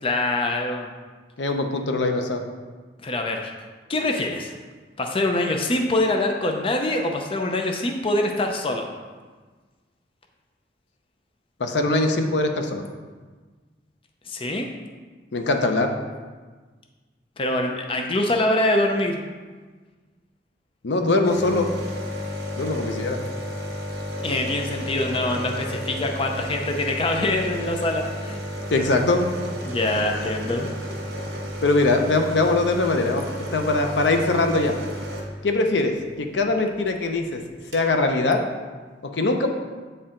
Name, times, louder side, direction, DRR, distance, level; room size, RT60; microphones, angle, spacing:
voice 1, 0.0-0.9 3.0-3.5 3.9-4.5 5.0-8.9 14.3-14.7 17.4-19.2 24.2-28.4 29.6-30.7, left 1 dB, 30° left, 3 dB, 0.5 m, -24 dB
voice 2, 1.4-2.4 11.6-12.8 15.3-15.9 20.8-21.7 22.6-23.2 28.7-29.2 30.1-30.3 31.6-33.2 33.5-34.7 35.4-37.4 37.7-38.4 39.1-39.5, left 2 dB, 75° left, 5 dB, 0.6 m, -22 dB
sound 1, 21.2-35.9 37.2-37.3 37.4-37.9, equal, 65° right, 1.1 m, -32 dB
8.2 x 4.4 x 3.7 m, 1.4 s
head